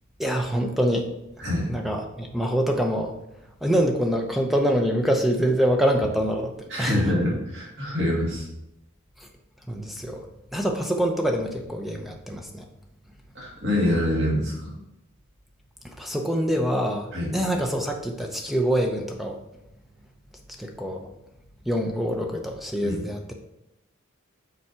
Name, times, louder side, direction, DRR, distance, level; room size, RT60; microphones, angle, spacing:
voice 1, 0.2-1.1 1.7-3.1 3.6-6.5 6.8-7.0 9.7-10.3 10.5-12.6 16.0-19.4 20.6-21.1 21.7-23.3, equal, ahead, 3 dB, 0.6 m, -25 dB
voice 2, 6.7-8.5 13.3-14.7 17.1-17.3 22.8-23.0, left 1 dB, 55° right, -5 dB, 2.7 m, -25 dB
6.9 x 4.7 x 4.4 m, 0.89 s
head